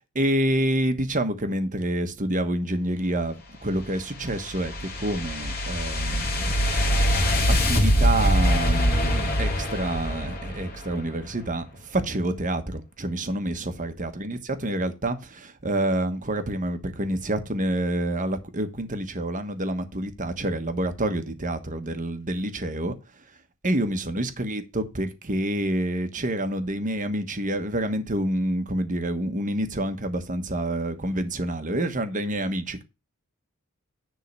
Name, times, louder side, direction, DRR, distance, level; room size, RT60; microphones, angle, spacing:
voice 1, 0.1-3.3 3.6-6.5 7.7-22.9 23.6-32.8, right 1 dB, 35° right, 1.3 m, -28 dB
sound 1, 3.7-11.0, equal, 45° left, 2.3 m, -23 dB
10.0 x 3.8 x 6.7 m
head